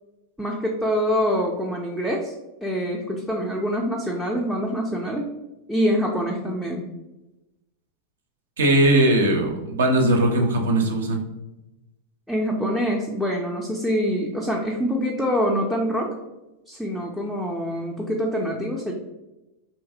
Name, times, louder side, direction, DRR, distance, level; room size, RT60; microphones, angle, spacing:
voice 1, 0.4-2.3 2.6-5.3 5.7-6.9 12.3-16.1 16.7-18.9, equal, ahead, -2 dB, 0.3 m, -25 dB
voice 2, 8.6-11.2, right 1 dB, 65° right, 2 dB, 0.4 m, -19 dB
2.8 x 2.6 x 2.4 m, 0.99 s
figure-of-eight pair, 90°, 0 cm